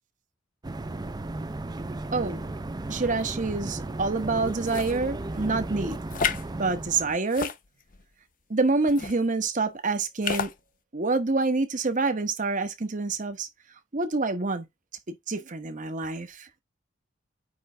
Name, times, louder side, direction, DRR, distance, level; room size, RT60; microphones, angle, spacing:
sound 1, 0.6-7.2, right 2 dB, 20° right, 0.5 m, -35 dB
voice 1, 2.1-2.5 2.9-6.0 6.5-7.5 8.5-10.5 10.9-13.5 13.9-14.7 15.1-16.5, right 3 dB, 45° right, 1.0 m, -27 dB
sound 2, 4.6-5.0 6.1-6.4 7.3-8.0 8.9-9.2 10.2-10.5, left 6 dB, 45° left, 0.7 m, -30 dB
9.2 x 3.2 x 3.8 m
head